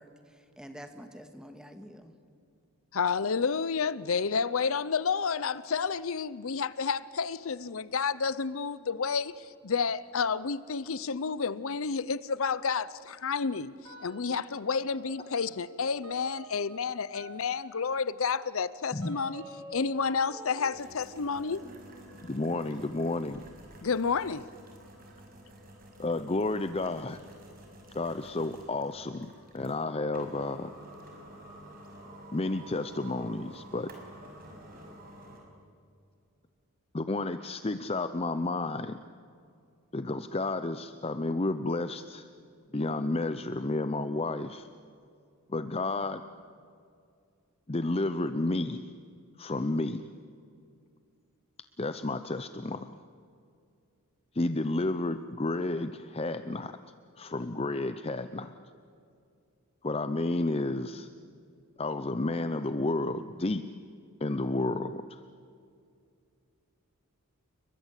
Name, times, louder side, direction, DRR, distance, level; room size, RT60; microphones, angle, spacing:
voice 1, 0.0-2.2, equal, 5° right, 1.8 m, -48 dB
voice 2, 2.9-21.6 23.8-24.5, left 5 dB, 65° left, 0.6 m, -30 dB
sound 1, 13.8-14.6 14.9-25.3, equal, 85° right, 6.3 m, -50 dB
sound 2, 20.7-35.4, right 1 dB, 40° right, 6.1 m, -50 dB
voice 3, 22.2-23.4 26.0-27.2 27.9-30.7 32.3-33.9 36.9-39.0 39.9-42.3 42.7-44.7 45.5-46.2 47.7-48.8 49.4-50.1 51.8-53.0 54.3-56.7 57.2-58.5 59.8-61.1 61.8-63.6 64.2-65.2, left 2 dB, 25° left, 0.7 m, -31 dB
30.0 x 22.5 x 8.3 m
head